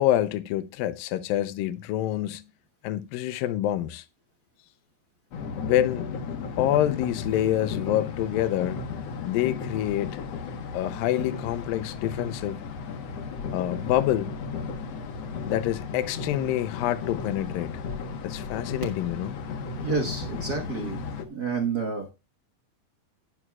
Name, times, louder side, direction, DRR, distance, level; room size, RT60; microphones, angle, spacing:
voice 1, 0.0-2.4 2.8-4.0 5.6-6.1 6.6-8.8 9.2-10.2 10.7-12.6 13.5-14.3 15.5-17.7 18.2-19.4, left 13 dB, 85° left, 2.4 m, -27 dB
sound 1, 5.3-21.2, left 5 dB, 60° left, 1.9 m, -35 dB
voice 2, 19.7-21.0 21.3-22.1, right 4 dB, 85° right, 0.8 m, -29 dB
11.0 x 11.0 x 2.3 m
omnidirectional pair, 4.1 m